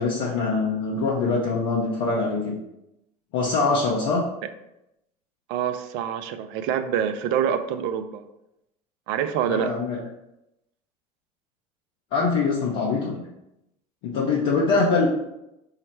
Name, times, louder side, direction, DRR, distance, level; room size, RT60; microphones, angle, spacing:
voice 1, 0.0-2.6 3.3-4.2 9.5-10.0 12.1-13.2 14.0-15.1, left 4 dB, 65° left, -4 dB, 0.8 m, -23 dB
voice 2, 5.5-8.2 9.1-9.8, right 8 dB, 60° right, 10 dB, 0.4 m, -26 dB
5.6 x 2.1 x 4.3 m, 0.87 s
hypercardioid pair, 70°, 20 cm